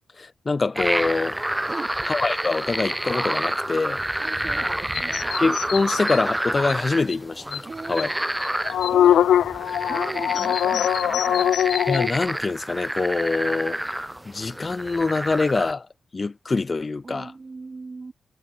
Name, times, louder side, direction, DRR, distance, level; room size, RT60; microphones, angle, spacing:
voice 1, 0.2-1.4 2.1-4.0 5.4-7.6 7.9-8.1 11.9-13.8 14.2-15.9 16.1-17.3, left 3 dB, 40° left, 1.1 m, -24 dB
sound 1, 0.8-15.7, right 1 dB, 10° right, 1.6 m, -29 dB
voice 2, 4.2-5.3 7.6-8.1 8.9-9.3 9.9-11.6 17.0-18.1, right 3 dB, 40° right, 7.7 m, -38 dB
sound 2, 4.9-6.2 6.7-6.8 7.1-7.2 7.5-7.6 8.0-8.1 8.4-12.1, left 10 dB, 80° left, 0.6 m, -22 dB
supercardioid pair, 40°, 0 cm